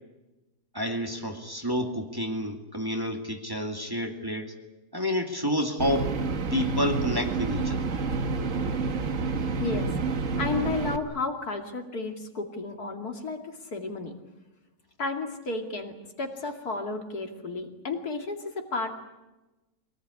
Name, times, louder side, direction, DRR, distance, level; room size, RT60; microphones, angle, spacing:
voice 1, 0.7-4.6 4.9-6.2 6.5-7.9, equal, 15° right, 2 dB, 2.3 m, -29 dB
sound 1, 5.8-11.0, right 4 dB, 55° right, 1.6 m, -29 dB
voice 2, 9.6-14.1 15.0-18.9, left 3 dB, 75° left, 4 dB, 3.0 m, -33 dB
24.5 x 18.5 x 9.8 m, 1.1 s
omnidirectional pair, 1.6 m